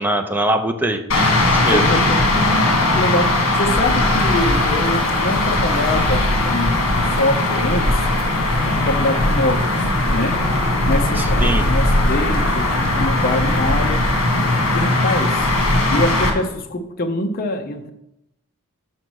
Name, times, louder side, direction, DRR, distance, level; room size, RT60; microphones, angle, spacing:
voice 1, 0.0-1.8 11.2-11.6, right 1 dB, 10° right, 6 dB, 0.6 m, -22 dB
sound 1, 1.1-16.3, left 2 dB, 65° left, 1.6 m, -18 dB
voice 2, 1.7-2.2 2.6-8.0 8.6-9.8 10.1-10.4 10.8-14.0 14.7-15.5 15.9-17.9, left 1 dB, 45° left, 5 dB, 0.6 m, -24 dB
5.6 x 5.0 x 6.3 m, 0.85 s
head